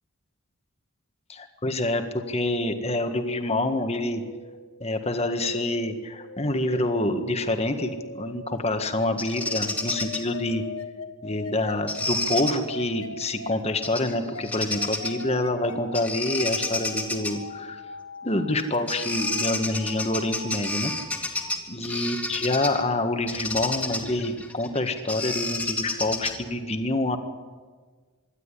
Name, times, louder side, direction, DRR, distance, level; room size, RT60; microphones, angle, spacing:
voice 1, 1.3-4.2 4.8-10.6 11.2-17.8 18.2-20.9 21.2-21.4 21.7-27.2, left 1 dB, 30° left, 7 dB, 1.6 m, -27 dB
sound 1, 3.6-21.5, left 3 dB, 75° left, 1.8 m, -42 dB
Bird vocalization bird call bird song, 9.2-10.2 11.9-12.5 13.8-14.1 14.4-15.2 15.9-17.3 18.6-18.7 18.9-22.8 23.3-26.5, left 2 dB, 5° left, 2.2 m, -30 dB
25.5 x 12.0 x 10.0 m, 1.5 s
head